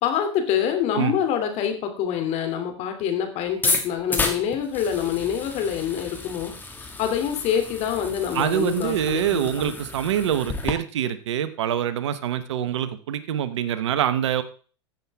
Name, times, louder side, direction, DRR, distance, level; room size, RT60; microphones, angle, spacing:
voice 1, 0.0-6.5 6.8-9.7, left 9 dB, 45° left, 6 dB, 2.8 m, -26 dB
sound 1, 3.5-10.7, left 3 dB, 10° left, 1.9 m, -31 dB
voice 2, 8.3-14.4, right 10 dB, 75° right, 13 dB, 1.0 m, -25 dB
14.5 x 7.4 x 3.5 m, 0.39 s
hypercardioid pair, 95°, 15 cm